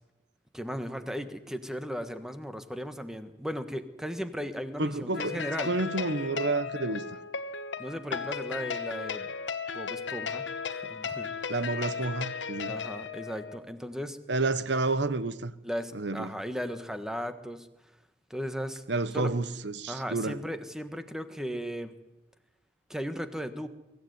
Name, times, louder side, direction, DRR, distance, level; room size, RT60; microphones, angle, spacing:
voice 1, 0.5-5.7 7.8-9.3 9.7-11.3 12.7-14.2 15.6-17.7 18.3-18.8 19.1-19.3 19.9-21.9 22.9-23.7, equal, 5° right, 1.4 m, -36 dB
voice 2, 4.8-7.0 11.5-12.7 14.3-15.5 15.9-16.3 18.9-20.4, right 3 dB, 70° right, 1.1 m, -30 dB
sound 1, 5.1-13.6, left 6 dB, 80° left, 1.2 m, -35 dB
23.5 x 15.0 x 9.5 m
head